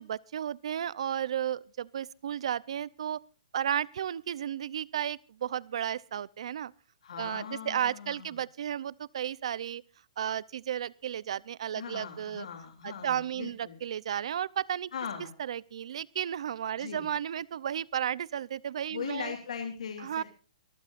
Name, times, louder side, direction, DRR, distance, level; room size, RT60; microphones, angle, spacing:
voice 1, 0.0-3.2 3.5-6.7 7.2-9.8 10.2-12.5 12.8-14.9 15.4-19.3 20.0-20.2, right 9 dB, 50° right, 0.7 m, -33 dB
voice 2, 7.0-8.4 11.7-13.8 14.9-15.3 16.7-17.1 18.9-20.2, left 7 dB, 65° left, 3.0 m, -39 dB
24.5 x 14.5 x 2.6 m
hypercardioid pair, 175°, 4 cm